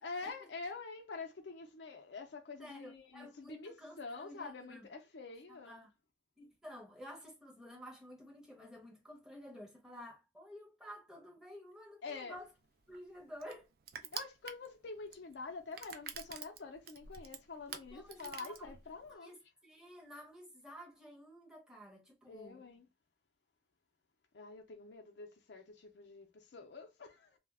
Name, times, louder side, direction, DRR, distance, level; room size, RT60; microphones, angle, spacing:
voice 1, 0.0-5.8 12.0-12.4 14.0-19.3 22.3-22.9 24.3-27.4, left 4 dB, 70° left, 0.5 m, -47 dB
voice 2, 2.6-4.9 5.5-5.9 6.4-12.5 12.9-13.7 17.7-18.7 19.1-22.6, equal, 5° right, 0.7 m, -52 dB
Crushing, 12.3-19.2, right 8 dB, 55° right, 0.3 m, -48 dB
2.3 x 2.1 x 3.4 m
head